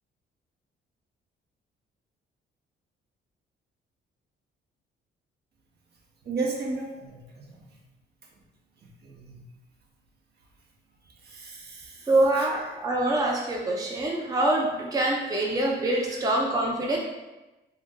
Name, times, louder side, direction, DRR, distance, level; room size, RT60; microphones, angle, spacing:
voice 1, 6.2-7.6 9.0-9.4 11.2-12.1 12.4-12.5 16.1-16.2, right 3 dB, 55° right, -1 dB, 0.8 m, -34 dB
voice 2, 12.1-17.0, right 1 dB, 20° right, -2 dB, 0.6 m, -25 dB
2.7 x 2.6 x 3.6 m, 1.1 s
cardioid pair, 90°, 20 cm